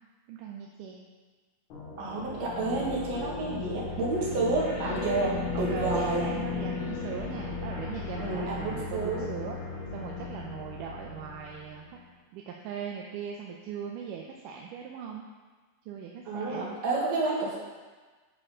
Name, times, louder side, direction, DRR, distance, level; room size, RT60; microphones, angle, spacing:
voice 1, 0.3-1.1 5.5-9.6 9.9-11.8 12.3-15.2 15.9-16.8, right 7 dB, 80° right, -1 dB, 2.1 m, -39 dB
sound 1, 1.7-11.9, left 4 dB, 65° left, 2.7 m, -36 dB
voice 2, 2.0-6.3 8.2-9.3 16.3-17.6, right 3 dB, 55° right, -5 dB, 2.7 m, -30 dB
9.8 x 4.6 x 4.9 m, 1.3 s
omnidirectional pair, 4.0 m